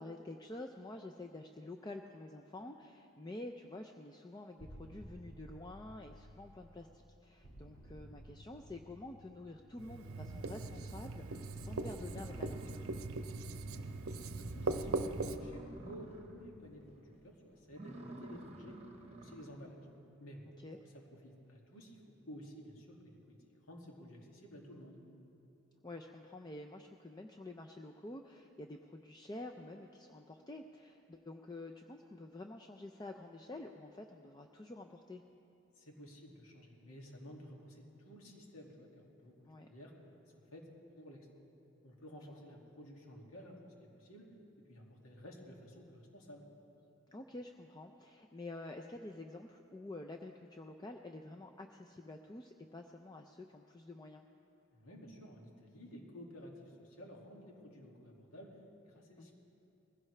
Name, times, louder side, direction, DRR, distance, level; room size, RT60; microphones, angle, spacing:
voice 1, 0.0-12.8 18.0-18.1 20.6-20.8 25.8-35.2 39.5-39.7 47.1-54.2 59.2-59.3, left 2 dB, 20° left, 3 dB, 0.4 m, -49 dB
sound 1, 4.6-10.3 11.5-17.8, equal, 50° left, 4.0 m, -56 dB
Writing, 9.8-15.4, right 3 dB, 85° right, 0.7 m, -40 dB
sound 2, 12.0-13.4 13.8-13.9 14.3-14.4 14.6-16.5 16.8-17.2 17.6-19.7, right 1 dB, 30° right, 1.1 m, -52 dB
voice 2, 14.2-18.8 19.1-19.8 20.2-22.0 22.3-23.4 23.7-25.0 35.8-39.3 39.7-39.9 40.3-40.7 41.0-41.3 41.8-43.6 43.9-44.3 44.7-46.5 54.7-58.5 58.9-59.3, equal, 85° left, -1 dB, 2.3 m, -53 dB
20.5 x 16.0 x 3.3 m, 2.8 s
head